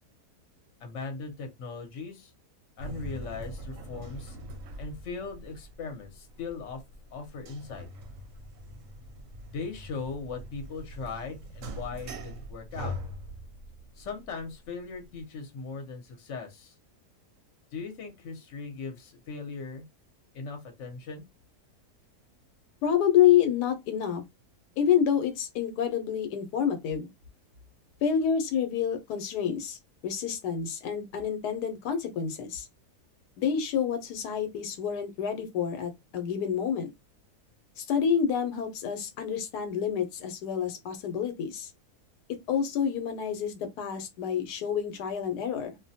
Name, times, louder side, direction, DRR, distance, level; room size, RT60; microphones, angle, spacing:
voice 1, 0.8-2.3 2.8-4.4 4.8-6.8 7.1-7.9 9.5-12.9 14.0-16.7 17.7-19.8 20.3-21.2, left 4 dB, 60° left, 1.0 m, -39 dB
sound 1, 2.8-15.2, equal, 70° right, 0.9 m, -43 dB
voice 2, 22.8-24.2 24.8-27.1 28.0-32.7 33.4-36.9 37.8-41.7 42.5-45.8, left 8 dB, 85° left, 1.2 m, -28 dB
2.6 x 2.1 x 2.7 m
omnidirectional pair, 1.7 m